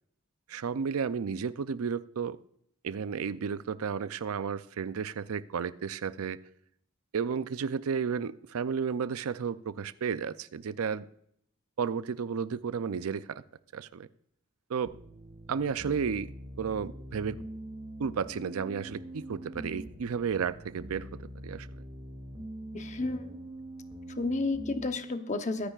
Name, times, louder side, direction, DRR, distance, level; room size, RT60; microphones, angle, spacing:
voice 1, 0.5-2.4 2.8-6.4 7.1-11.1 11.8-13.4 13.7-14.1 14.7-14.9 15.5-17.4 18.0-21.1 21.4-21.7, right 6 dB, 75° right, 14 dB, 0.5 m, -32 dB
sound 1, 14.9-24.9, right 1 dB, 20° right, 2.5 m, -44 dB
voice 2, 22.7-23.2 24.2-25.7, left 3 dB, 30° left, 8 dB, 0.9 m, -31 dB
22.5 x 9.9 x 2.4 m, 0.69 s
head